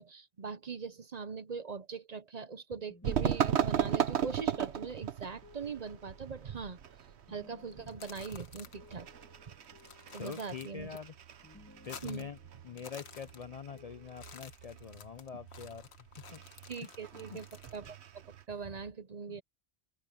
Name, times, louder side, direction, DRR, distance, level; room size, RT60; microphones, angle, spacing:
voice 1, 0.0-6.8 7.3-9.1 10.1-11.0 12.0-12.3 16.7-19.4, right 5 dB, 45° right, 0.8 m, -41 dB
sound 1, 2.9-11.2 11.4-14.5, left 2 dB, 15° left, 3.1 m, -61 dB
sound 2, 3.0-18.4, right 9 dB, 85° right, 1.2 m, -37 dB
sound 3, 7.7-8.9 9.2-9.3 9.6-11.0 11.3-12.4 12.7-13.8 14.1-17.9, left 6 dB, 75° left, 1.5 m, -52 dB
voice 2, 10.2-11.1 11.9-12.4 12.6-15.9 16.3-16.4 16.8-17.4 19.3-19.4, left 7 dB, 50° left, 0.5 m, -45 dB
open air
omnidirectional pair, 1.1 m